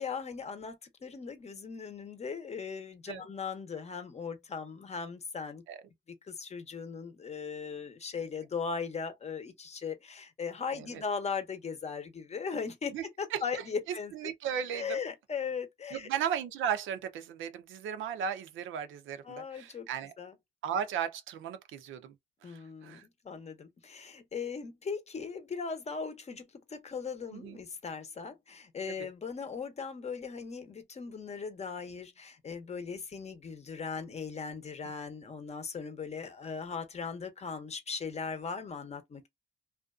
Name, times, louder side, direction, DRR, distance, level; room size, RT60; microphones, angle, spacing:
voice 1, 0.0-5.6 6.2-14.1 14.7-16.1 19.2-19.9 20.2-20.3 22.4-23.0 23.2-26.4 26.7-39.3, left 5 dB, 35° left, 0.7 m, -38 dB
voice 2, 12.9-13.4 14.1-15.0 15.9-20.1 20.6-22.1 22.5-23.0 27.3-27.6 29.0-29.1, right 8 dB, 80° right, 0.5 m, -36 dB
2.5 x 2.3 x 2.3 m
cardioid pair, 90°, 20 cm